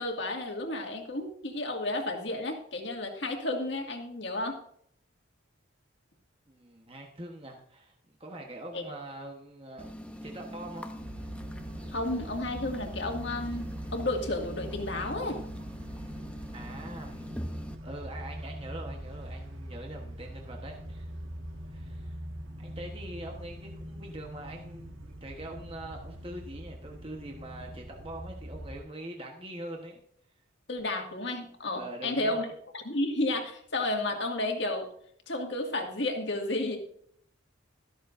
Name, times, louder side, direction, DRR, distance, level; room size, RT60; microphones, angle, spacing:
voice 1, 0.0-4.6 8.7-8.8 11.9-15.4 30.7-32.5 32.7-34.9 35.3-36.8, left 2 dB, 60° left, 2 dB, 2.1 m, -32 dB
voice 2, 6.5-9.9 10.2-10.9 16.5-17.3 17.8-21.2 21.6-22.2 22.6-30.0 31.7-32.5, right 1 dB, 25° right, 1 dB, 1.2 m, -43 dB
sound 1, 9.8-17.7, equal, 5° left, 0.7 m, -43 dB
sound 2, 11.0-28.8, equal, 75° right, 1.7 m, -42 dB
13.5 x 13.0 x 2.6 m, 0.65 s
head